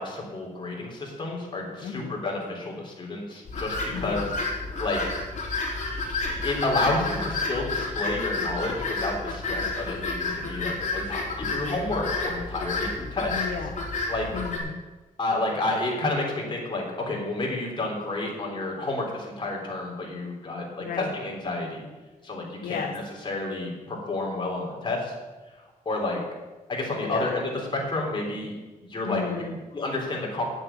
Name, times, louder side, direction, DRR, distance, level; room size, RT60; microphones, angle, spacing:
voice 1, 0.0-4.3 4.8-5.0 6.2-13.5 14.1-14.3 15.2-21.9 22.2-25.1 25.9-26.2 26.7-28.5 28.9-29.2 29.7-30.4, left 2 dB, 35° left, -1 dB, 3.6 m, -30 dB
voice 2, 1.8-2.1 3.9-4.3 13.3-13.8 14.3-14.8 20.8-21.1 22.6-23.0 27.0-27.3 29.0-29.6, left 6 dB, 85° left, 4 dB, 0.9 m, -33 dB
sound 1, 3.5-14.6, left 3 dB, 55° left, 3.9 m, -30 dB
9.2 x 7.7 x 8.5 m, 1.2 s
wide cardioid pair, 125°, 14 cm